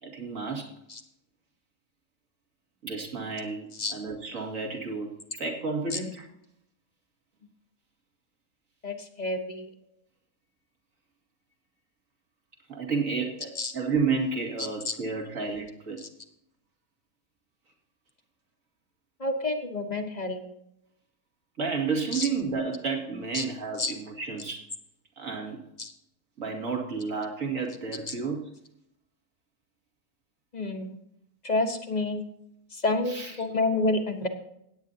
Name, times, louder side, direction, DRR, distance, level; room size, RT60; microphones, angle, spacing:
voice 1, 0.0-0.8 2.8-5.1 5.4-6.3 12.7-16.0 21.6-24.6 25.2-25.6 26.4-28.4 33.1-33.4, right 4 dB, 60° right, 1 dB, 2.6 m, -31 dB
voice 2, 8.8-9.7 13.6-13.7 14.6-14.9 16.0-16.1 19.2-20.4 22.1-22.3 23.3-23.4 23.8-23.9 25.8-25.9 28.1-28.2 30.5-31.0 31.4-32.2 32.7-34.3, left 2 dB, 30° left, 5 dB, 1.1 m, -29 dB
17.0 x 9.1 x 2.8 m, 0.77 s
omnidirectional pair, 1.6 m